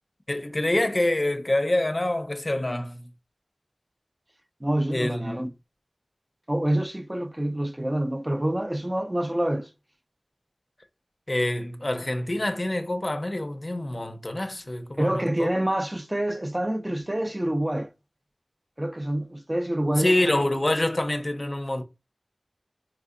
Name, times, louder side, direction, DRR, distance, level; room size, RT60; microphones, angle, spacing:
voice 1, 0.3-3.0 4.9-5.5 11.3-15.5 20.0-21.8, left 1 dB, 45° left, 0.5 m, -26 dB
voice 2, 4.6-5.5 6.5-9.7 15.0-17.9 18.8-20.3, right 1 dB, 25° right, 0.4 m, -27 dB
4.2 x 2.7 x 2.4 m
wide cardioid pair, 50°, 0 cm